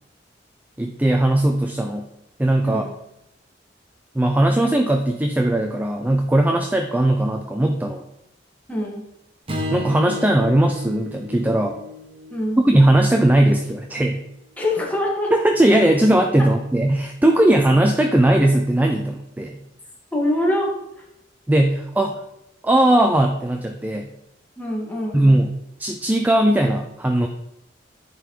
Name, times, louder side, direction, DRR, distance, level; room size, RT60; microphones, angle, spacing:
voice 1, 0.8-2.1 2.4-2.8 4.1-8.0 9.7-11.8 12.6-14.2 15.3-19.6 21.5-22.2 22.6-24.1 25.1-25.5 25.8-27.3, right 1 dB, 10° right, 4 dB, 0.4 m, -18 dB
voice 2, 8.7-9.0 12.3-12.6 14.6-15.3 20.1-20.7 24.6-25.2, left 1 dB, 10° left, -2 dB, 1.6 m, -24 dB
Strum, 9.5-13.8, left 2 dB, 30° right, 1.1 m, -34 dB
10.0 x 4.0 x 4.7 m, 0.83 s
head